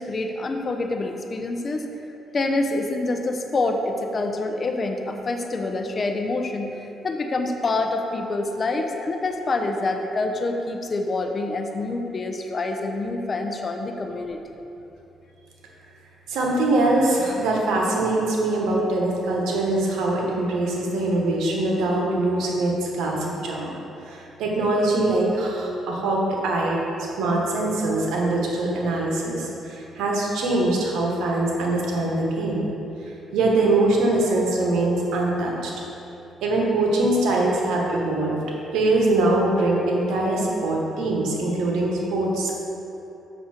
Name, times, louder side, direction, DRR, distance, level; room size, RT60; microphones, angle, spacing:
voice 1, 0.0-1.9 2.3-6.7 7.0-14.4, left 2 dB, 40° left, 4 dB, 0.7 m, -26 dB
voice 2, 16.3-23.7 24.0-26.8 27.2-32.6 33.0-35.7 36.4-38.4 38.7-42.5, right 2 dB, 85° right, -2 dB, 1.3 m, -23 dB
7.0 x 6.4 x 4.4 m, 2.9 s
cardioid pair, 90°, 0 cm